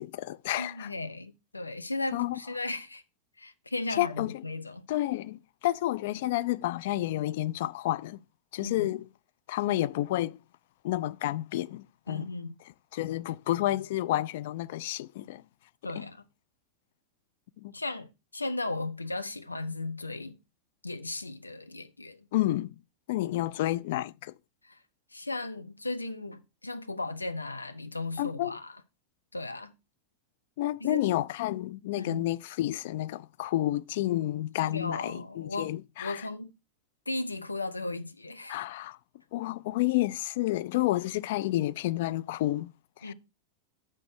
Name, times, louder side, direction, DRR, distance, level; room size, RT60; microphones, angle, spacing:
voice 1, 0.0-0.9 2.1-2.4 3.9-4.4 4.9-8.2 8.5-9.1 9.5-10.4 10.8-12.2 12.9-15.4 16.0-16.1 17.6-17.7 22.3-22.8 23.1-24.3 28.2-28.6 30.6-36.3 38.5-39.0 39.3-42.7 43.0-43.1, left 15 dB, 55° left, 0.3 m, -30 dB
voice 2, 0.6-3.0 3.4-4.8 8.6-8.9 12.1-12.5 15.8-16.2 17.7-20.4 20.8-22.3 24.6-24.8 25.1-28.7 29.3-29.7 30.8-31.0 32.0-32.2 34.6-36.5 37.1-38.6 43.0-43.1, left 2 dB, 80° left, 0.7 m, -36 dB
7.5 x 6.0 x 4.9 m
figure-of-eight pair, 90°, 0 cm